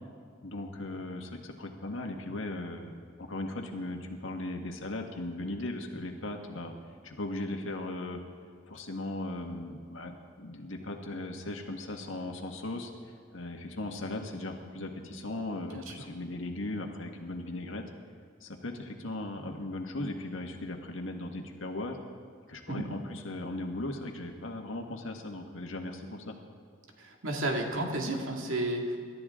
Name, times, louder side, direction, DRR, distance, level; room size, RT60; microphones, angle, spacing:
voice 1, 0.4-6.7 7.0-8.2 8.7-12.9 13.3-17.8 18.4-22.0 22.5-26.3, left 2 dB, 75° left, 3 dB, 1.8 m, -38 dB
voice 2, 27.0-29.0, right 1 dB, 80° right, 1 dB, 2.3 m, -32 dB
27.0 x 13.0 x 3.8 m, 2.2 s
head